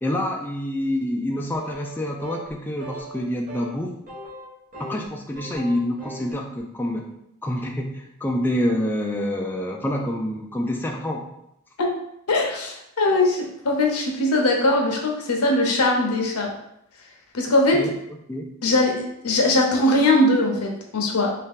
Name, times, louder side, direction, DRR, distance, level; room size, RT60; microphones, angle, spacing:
voice 1, 0.0-3.9 4.8-7.1 7.4-11.3 17.7-17.9 18.3-18.5, left 1 dB, 10° left, 1 dB, 0.3 m, -27 dB
sound 1, 1.5-2.0 2.2-2.5 2.8-3.2 3.5-3.7 4.1-5.1 5.3-6.3, right 1 dB, 40° right, 1.3 m, -38 dB
voice 2, 12.3-16.5 17.3-17.8 18.6-21.3, left 2 dB, 80° left, 1 dB, 0.8 m, -21 dB
3.6 x 2.8 x 3.6 m, 0.79 s
head